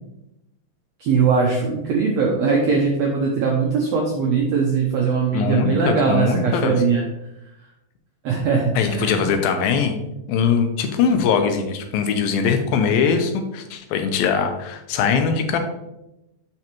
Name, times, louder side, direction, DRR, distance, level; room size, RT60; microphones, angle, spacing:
voice 1, 1.0-7.1 8.2-9.2, right 5 dB, 80° right, -1 dB, 1.5 m, -20 dB
voice 2, 5.3-6.7 8.8-10.0 10.3-15.6, left 6 dB, 90° left, 6 dB, 2.6 m, -21 dB
7.6 x 5.9 x 3.0 m, 0.90 s
omnidirectional pair, 4.1 m